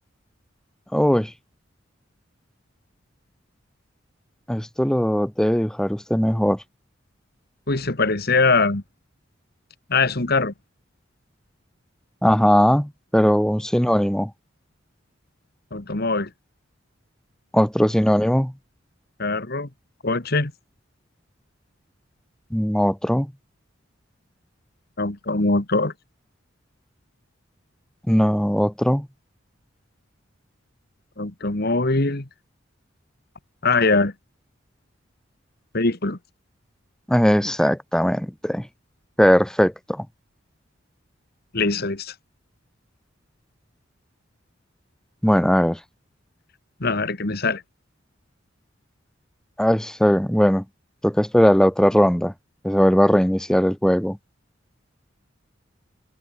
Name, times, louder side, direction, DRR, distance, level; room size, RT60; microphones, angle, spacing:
voice 1, 0.9-1.3 4.5-6.6 12.2-14.3 17.5-18.5 22.5-23.3 28.1-29.1 37.1-38.7 39.2-40.1 45.2-45.8 49.6-50.6 51.0-52.3 52.6-54.2, equal, 5° left, 0.7 m, -19 dB
voice 2, 7.7-8.8 9.9-10.5 15.7-16.3 19.2-19.7 20.0-20.5 25.0-25.9 31.2-32.3 33.6-34.1 35.7-36.2 41.5-42.1 46.8-47.6, left 3 dB, 50° left, 1.8 m, -22 dB
head